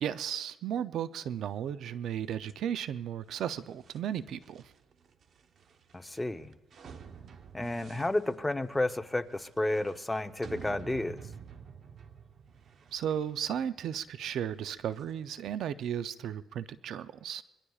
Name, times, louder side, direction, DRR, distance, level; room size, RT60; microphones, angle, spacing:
voice 1, 0.0-4.7 12.9-17.4, right 9 dB, 75° right, 13 dB, 0.5 m, -35 dB
sound 1, 2.3-15.5, right 6 dB, 60° right, 0.9 m, -51 dB
voice 2, 5.9-6.5 7.5-11.2, left 1 dB, 10° left, 7 dB, 0.8 m, -31 dB
25.0 x 22.5 x 2.4 m, 1.1 s
cardioid pair, 90°, 0 cm